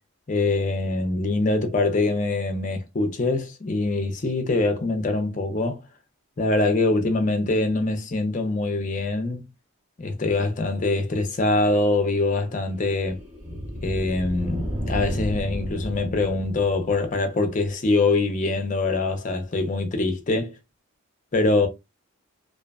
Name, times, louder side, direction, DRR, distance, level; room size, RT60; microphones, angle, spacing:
voice 1, 0.3-5.8 6.4-9.4 10.0-13.2 13.8-20.5 21.3-21.7, left 2 dB, 35° left, 0.4 m, -24 dB
sound 1, 12.0-17.2, equal, 25° right, 0.7 m, -33 dB
2.6 x 2.1 x 2.2 m
head